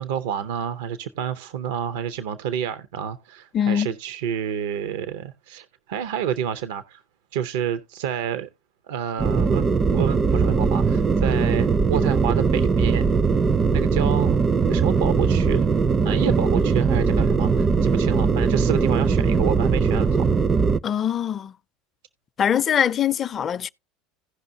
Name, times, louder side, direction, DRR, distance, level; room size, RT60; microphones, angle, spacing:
voice 1, 0.0-7.0 7.3-8.5 8.9-13.0 13.7-14.4 14.7-15.6 16.0-20.3, right 9 dB, 75° right, 0.6 m, -29 dB
voice 2, 3.5-3.9 20.8-21.5 22.4-23.7, left 9 dB, 35° left, 0.4 m, -22 dB
sound 1, 9.2-20.8, right 5 dB, 25° right, 0.4 m, -20 dB
16.5 x 5.4 x 2.6 m
hypercardioid pair, 85°, 0 cm